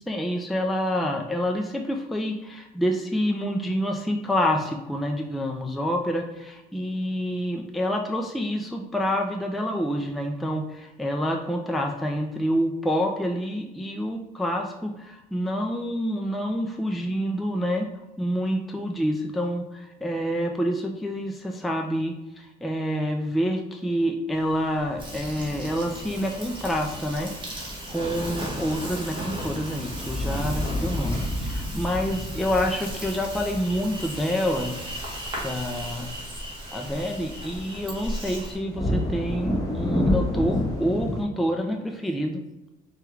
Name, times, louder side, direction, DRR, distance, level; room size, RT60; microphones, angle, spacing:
voice 1, 0.1-17.9 18.2-34.7 35.4-36.1 36.7-42.4, equal, ahead, 2 dB, 0.4 m, -27 dB
sound 1, 24.3-41.2, left 1 dB, 20° left, 1.3 m, -32 dB
Insect, 25.0-38.6, equal, 30° right, 1.2 m, -36 dB
4.6 x 2.4 x 3.1 m, 0.99 s
cardioid pair, 110°, 17 cm